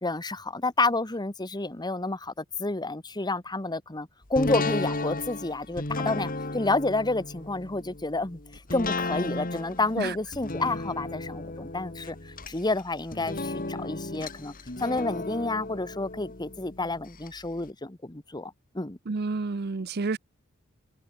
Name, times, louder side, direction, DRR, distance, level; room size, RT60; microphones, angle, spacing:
voice 1, 0.0-8.4 8.7-19.0, left 2 dB, 20° left, 1.3 m, -30 dB
sound 1, 4.3-17.3 17.7-17.8, left 2 dB, 40° left, 2.5 m, -34 dB
voice 2, 19.1-20.2, right 4 dB, 50° right, 0.6 m, -29 dB
head